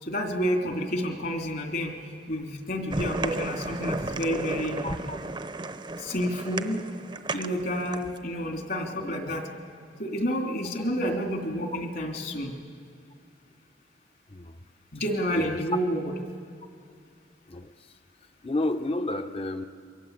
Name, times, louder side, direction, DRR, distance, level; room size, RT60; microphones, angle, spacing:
voice 1, 0.0-2.0 2.3-4.8 6.0-6.8 7.3-9.5 10.0-12.5 14.9-16.1, equal, 55° left, 3 dB, 2.9 m, -29 dB
sound 1, 2.9-8.2, right 2 dB, 25° right, 0.8 m, -34 dB
voice 2, 4.8-5.2 9.0-9.2 14.3-14.6 15.3-15.6 17.5-17.9 18.4-19.7, left 2 dB, 30° left, 8 dB, 0.9 m, -32 dB
28.0 x 23.0 x 8.1 m, 2.3 s
head